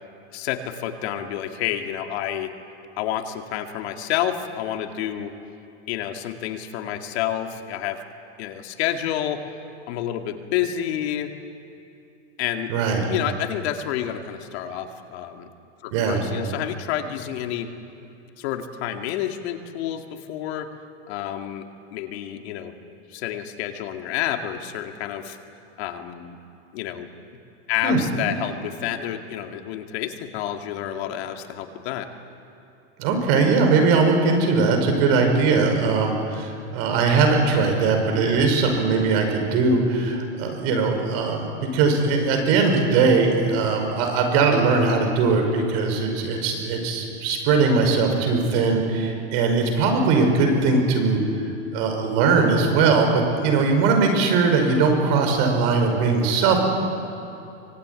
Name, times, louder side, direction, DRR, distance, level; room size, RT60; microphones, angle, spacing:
voice 1, 0.3-2.5 3.0-5.3 5.9-8.0 8.4-9.4 9.9-11.3 12.4-12.7 13.1-15.5 15.8-17.7 18.4-20.7 21.1-21.6 21.9-22.7 23.1-25.4 25.8-26.4 26.7-27.1 27.7-32.1, left 11 dB, 60° left, 5 dB, 2.2 m, -29 dB
voice 2, 12.7-13.0 15.9-16.2 27.8-28.0 33.0-51.2 51.7-56.6, right 4 dB, 50° right, 4 dB, 5.7 m, -20 dB
24.5 x 21.5 x 9.8 m, 2.8 s
supercardioid pair, 150°, 37 cm